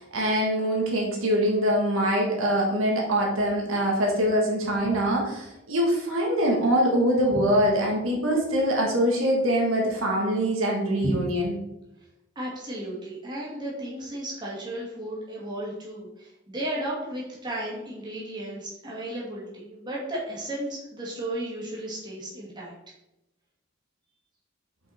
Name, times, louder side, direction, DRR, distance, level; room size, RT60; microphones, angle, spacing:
voice 1, 0.0-11.5, equal, 75° right, -1 dB, 1.5 m, -24 dB
voice 2, 12.4-22.7, right 1 dB, 20° right, -5 dB, 2.1 m, -34 dB
5.6 x 5.3 x 4.2 m, 0.89 s
head